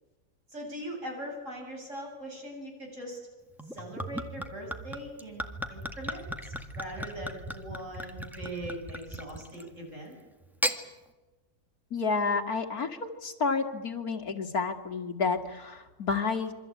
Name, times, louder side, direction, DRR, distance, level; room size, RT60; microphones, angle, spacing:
voice 1, 0.5-3.3 3.6-10.2, right 1 dB, 50° right, 1 dB, 7.5 m, -41 dB
Gurgling / Chink clink / Liquid, 3.6-9.7 10.4-10.8, equal, ahead, 1.7 m, -36 dB
voice 2, 11.9-16.5, left 4 dB, 65° left, 5 dB, 2.6 m, -30 dB
27.5 x 24.0 x 8.5 m, 1.2 s
omnidirectional pair, 1.7 m